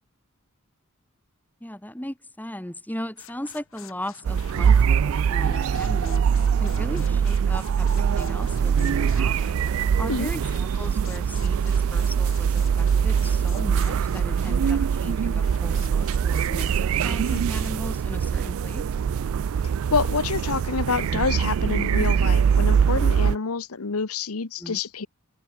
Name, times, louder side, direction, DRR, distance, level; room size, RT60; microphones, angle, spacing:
voice 1, 1.6-5.0 5.3-6.2 6.6-9.5 10.0-18.8 24.6-24.8, left 1 dB, 10° left, 2.6 m, -37 dB
sound 1, 3.2-17.7, left 9 dB, 65° left, 2.2 m, -49 dB
sound 2, 4.3-23.4, right 7 dB, 70° right, 0.4 m, -23 dB
voice 2, 19.9-25.1, left 5 dB, 85° left, 1.0 m, -27 dB
open air
head